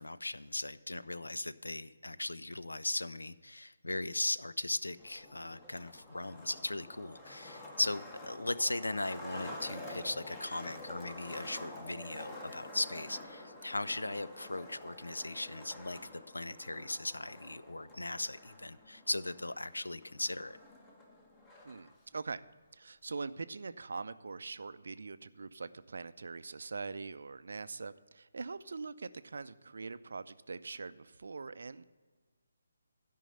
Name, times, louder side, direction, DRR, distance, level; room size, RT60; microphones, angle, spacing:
voice 1, 0.0-20.6, left 2 dB, 80° left, 15 dB, 0.4 m, -38 dB
Skateboard, 4.9-21.9, left 1 dB, 15° left, 1.2 m, -49 dB
voice 2, 21.6-22.4 22.7-31.8, right 4 dB, 65° right, 14 dB, 0.4 m, -43 dB
13.0 x 5.4 x 5.4 m, 1.4 s
figure-of-eight pair, 145°, 0 cm